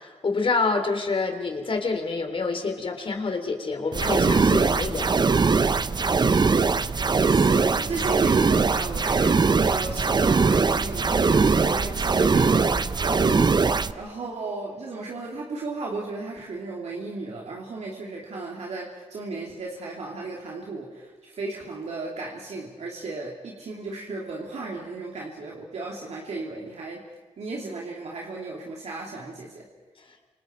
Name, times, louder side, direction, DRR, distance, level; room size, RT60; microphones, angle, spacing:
voice 1, 0.0-5.1, left 4 dB, 50° left, 5 dB, 3.5 m, -27 dB
sound 1, 3.9-13.9, right 4 dB, 40° right, 0.8 m, -21 dB
voice 2, 6.9-27.0 27.4-29.7, right 3 dB, 70° right, -2 dB, 3.0 m, -35 dB
29.5 x 26.5 x 4.6 m, 1.3 s
cardioid pair, 75°, 12 cm